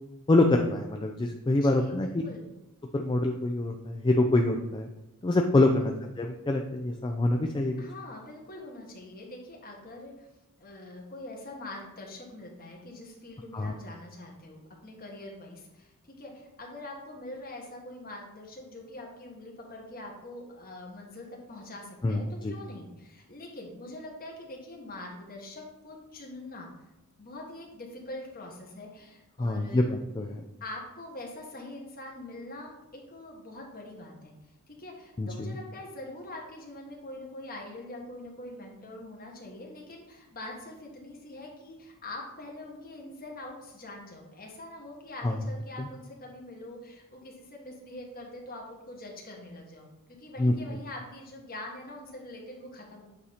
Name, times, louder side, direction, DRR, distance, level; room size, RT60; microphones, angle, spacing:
voice 1, 0.3-2.1 2.9-4.9 5.2-7.8 13.5-13.8 22.0-22.5 29.4-30.4 35.2-35.6 45.2-45.4 45.8-45.9 50.4-50.5, left 2 dB, 20° left, 3 dB, 0.3 m, -26 dB
voice 2, 1.5-2.4 5.7-6.0 7.8-10.3 10.6-26.8 27.2-29.9 30.6-34.3 34.7-53.0, left 1 dB, 40° left, 0 dB, 1.3 m, -44 dB
8.2 x 2.8 x 4.9 m, 0.94 s
head